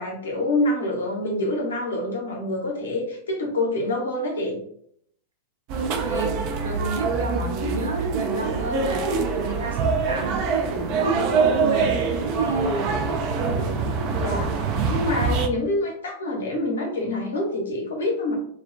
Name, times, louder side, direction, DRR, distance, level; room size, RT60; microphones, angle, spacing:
voice 1, 0.0-4.6 14.2-14.5 14.9-18.3, left 1 dB, 75° left, -1 dB, 0.8 m, -26 dB
sound 1, 5.7-15.5, right 4 dB, 50° right, 0.3 m, -24 dB
voice 2, 5.7-9.0 9.3-11.9 12.2-12.7, right 4 dB, 75° right, -1 dB, 0.7 m, -30 dB
2.4 x 2.0 x 2.4 m, 0.67 s
figure-of-eight pair, 90°, 0 cm